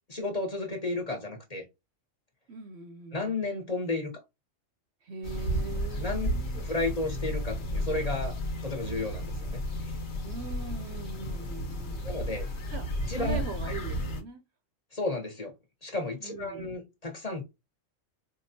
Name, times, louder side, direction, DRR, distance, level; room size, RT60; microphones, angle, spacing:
voice 1, 0.1-1.6 3.1-4.1 6.0-6.3 6.5-8.3 8.6-10.0 12.0-12.5 13.1-13.4 14.9-15.5 15.8-17.4, left 3 dB, 30° left, 1.2 m, -33 dB
voice 2, 2.5-3.4 5.0-6.7 10.2-12.1 12.7-14.4 16.2-16.8, right 4 dB, 65° right, 0.8 m, -41 dB
sound 1, 5.2-14.2, equal, 60° left, 1.3 m, -33 dB
4.6 x 2.3 x 2.7 m
omnidirectional pair, 1.3 m